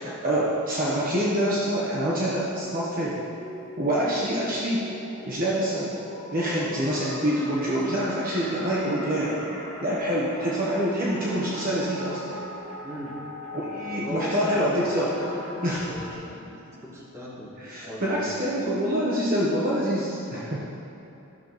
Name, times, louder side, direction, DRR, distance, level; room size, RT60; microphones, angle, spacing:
voice 1, 0.0-3.2 3.8-4.8 5.2-5.9 6.3-9.3 9.8-12.4 13.7-15.1 15.6-15.8 17.6-20.6, equal, 40° right, -6 dB, 1.1 m, -26 dB
sound 1, 1.5-16.1, left 1 dB, 30° left, 2.0 m, -41 dB
voice 2, 12.8-13.2 13.9-17.6 17.9-18.3, equal, 15° right, -7 dB, 1.8 m, -37 dB
12.5 x 6.7 x 4.0 m, 2.9 s
head